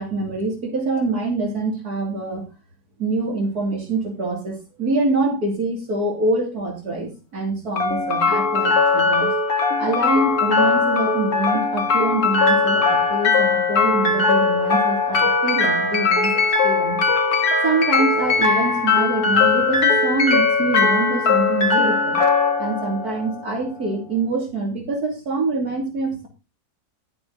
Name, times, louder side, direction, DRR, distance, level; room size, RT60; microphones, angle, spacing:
voice 1, 0.0-2.4 3.0-9.3 9.8-16.3 16.6-17.0 17.6-22.2 22.6-26.3, right 2 dB, 75° right, 1 dB, 3.1 m, -25 dB
sound 1, 7.8-23.8, left 4 dB, 70° left, 2.3 m, -19 dB
11.5 x 7.7 x 3.8 m, 0.28 s
omnidirectional pair, 1.6 m